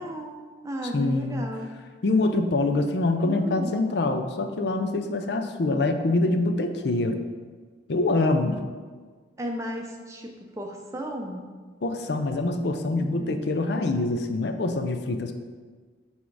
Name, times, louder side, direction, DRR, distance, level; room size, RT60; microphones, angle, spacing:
voice 1, 0.0-1.7 3.2-3.8 4.8-4.9 9.4-11.5 13.0-13.4, equal, 15° right, 1 dB, 0.6 m, -35 dB
voice 2, 0.9-1.4 2.0-7.2 7.9-8.6 11.8-15.3, left 2 dB, 65° left, 6 dB, 0.5 m, -25 dB
6.1 x 3.6 x 4.7 m, 1.5 s
head